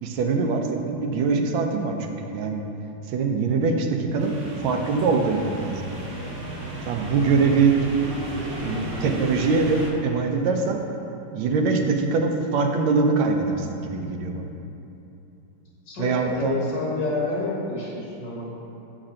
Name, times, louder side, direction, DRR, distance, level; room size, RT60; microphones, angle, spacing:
voice 1, 0.0-2.0 2.3-2.6 3.1-4.4 4.6-5.8 6.9-7.8 8.6-10.8 11.3-14.5 16.0-16.6, right 4 dB, 75° right, 3 dB, 1.4 m, -23 dB
sound 1, 4.2-9.9, right 1 dB, 55° right, 1.6 m, -34 dB
voice 2, 15.9-18.6, left 3 dB, 55° left, -5 dB, 2.0 m, -29 dB
7.4 x 5.0 x 4.3 m, 2.8 s
omnidirectional pair, 2.4 m